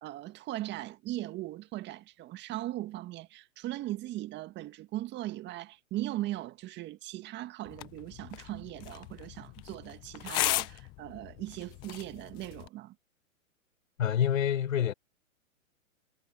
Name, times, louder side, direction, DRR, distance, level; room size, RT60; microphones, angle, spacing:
voice 1, 0.0-13.0, right 15 dB, 25° right, 1.8 m, -39 dB
sound 1, 7.7-12.7, left 19 dB, 10° left, 0.4 m, -37 dB
voice 2, 14.0-14.9, left 9 dB, 70° left, 4.7 m, -27 dB
hypercardioid pair, 125°, 41 cm